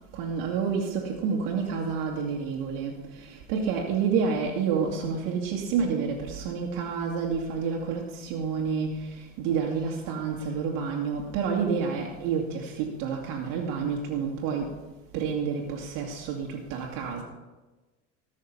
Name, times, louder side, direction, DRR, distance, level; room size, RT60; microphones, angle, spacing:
voice 1, 0.1-14.8 15.1-17.2, right 6 dB, 65° right, -1 dB, 2.2 m, -29 dB
18.5 x 6.6 x 5.7 m, 1.2 s
supercardioid pair, 115°, 36 cm